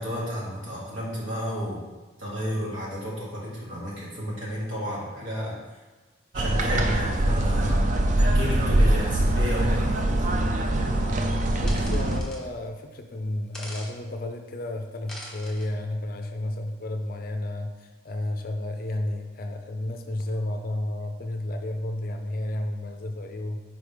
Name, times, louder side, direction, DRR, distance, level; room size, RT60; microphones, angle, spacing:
voice 1, 0.0-1.8 2.2-5.6 6.3-7.8 8.2-10.1, equal, 65° right, -5 dB, 1.8 m, -32 dB
sound 1, 6.3-12.2, right 1 dB, 35° right, 0.4 m, -23 dB
voice 2, 11.1-23.6, left 1 dB, 45° left, 5 dB, 0.4 m, -32 dB
sound 2, 11.7-12.4 13.5-13.9 15.1-15.7, left 1 dB, 5° left, 0.7 m, -41 dB
5.1 x 3.7 x 4.9 m, 1.2 s
head